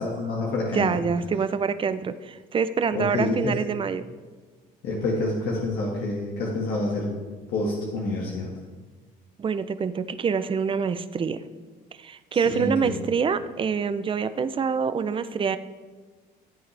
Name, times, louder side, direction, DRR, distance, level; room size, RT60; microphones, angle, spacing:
voice 1, 0.0-1.0 2.9-3.6 4.8-7.1 7.5-8.5 12.3-13.0, left 2 dB, 70° left, -3 dB, 1.8 m, -27 dB
voice 2, 0.7-4.0 9.4-11.4 12.0-15.6, right 6 dB, 30° right, 12 dB, 0.6 m, -26 dB
15.0 x 8.5 x 3.4 m, 1.4 s
cardioid pair, 110°, 17 cm